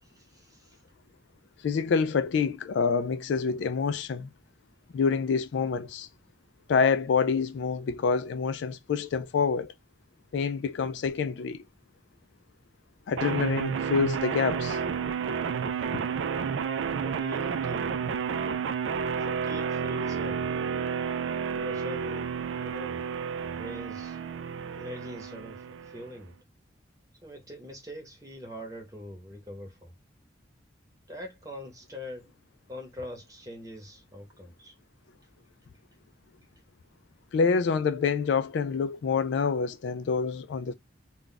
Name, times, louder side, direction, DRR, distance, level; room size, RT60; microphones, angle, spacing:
voice 1, 0.0-0.8 17.0-18.0 19.2-20.6 21.5-23.0 23.5-24.2 24.7-26.3 27.2-29.9 31.1-32.3 32.7-34.7, left 1 dB, 20° right, 0.9 m, -43 dB
voice 2, 1.6-4.3 4.9-6.1 6.7-9.7 10.3-11.6 13.1-14.8 37.3-40.7, left 5 dB, 65° left, 0.3 m, -27 dB
sound 1, 13.2-26.2, right 6 dB, 75° right, 0.3 m, -31 dB
2.4 x 2.2 x 3.8 m
head